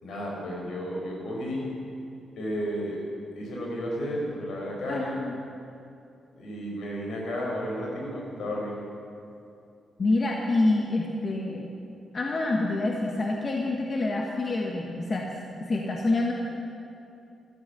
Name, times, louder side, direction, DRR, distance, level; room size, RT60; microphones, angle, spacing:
voice 1, 0.0-1.7 2.4-3.0 3.4-5.2 6.4-8.8, equal, 75° left, -2 dB, 4.5 m, -32 dB
voice 2, 4.9-5.3 10.0-11.7 12.1-15.3 15.7-16.3, left 2 dB, 35° left, 0 dB, 1.3 m, -27 dB
14.0 x 14.0 x 6.8 m, 2.7 s
wide cardioid pair, 165°, 0 cm